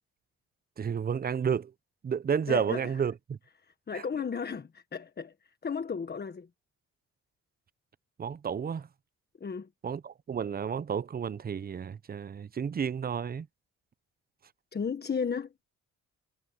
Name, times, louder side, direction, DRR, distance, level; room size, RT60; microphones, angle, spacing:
voice 1, 0.8-1.7 2.0-3.4 3.9-4.0 8.2-8.9 9.8-13.5, right 7 dB, 30° right, 0.7 m, -31 dB
voice 2, 2.5-2.8 3.9-5.3 5.6-6.5 9.4-9.7 14.7-15.5, left 6 dB, 35° left, 1.5 m, -34 dB
cardioid pair, 90°, 30 cm